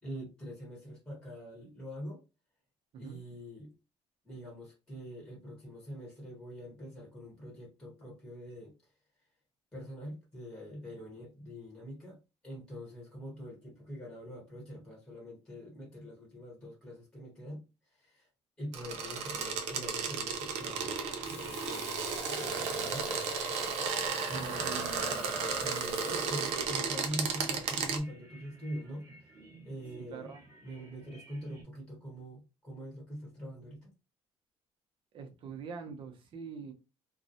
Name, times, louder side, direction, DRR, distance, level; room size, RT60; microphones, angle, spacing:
voice 1, 0.0-2.2 3.0-3.7 4.2-8.7 9.7-12.2 12.4-17.6 18.0-18.3 18.6-21.0 21.3-23.4 24.3-24.9 25.6-29.1 29.6-30.3 30.6-33.9, equal, 5° left, 1.0 m, -44 dB
sound 1, 18.7-28.0, right 5 dB, 90° right, 0.5 m, -34 dB
sound 2, 20.6-31.6, right 3 dB, 25° right, 1.0 m, -53 dB
Frying (food), 21.2-26.5, left 5 dB, 90° left, 0.8 m, -48 dB
voice 2, 24.3-25.4 30.1-30.4 35.1-36.7, right 5 dB, 50° right, 0.6 m, -44 dB
2.3 x 2.1 x 2.6 m
cardioid pair, 145°, 11 cm